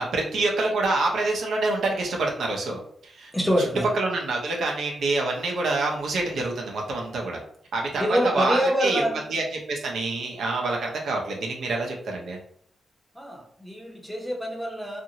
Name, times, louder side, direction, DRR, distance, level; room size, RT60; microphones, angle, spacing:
voice 1, 0.0-3.3 3.9-7.4 7.7-9.0 9.3-12.4, right 2 dB, 80° right, 0 dB, 0.7 m, -27 dB
voice 2, 3.3-3.9 8.0-9.4 13.1-15.0, equal, ahead, -1 dB, 0.8 m, -26 dB
2.6 x 2.6 x 2.8 m, 0.64 s
cardioid pair, 85°, 0 cm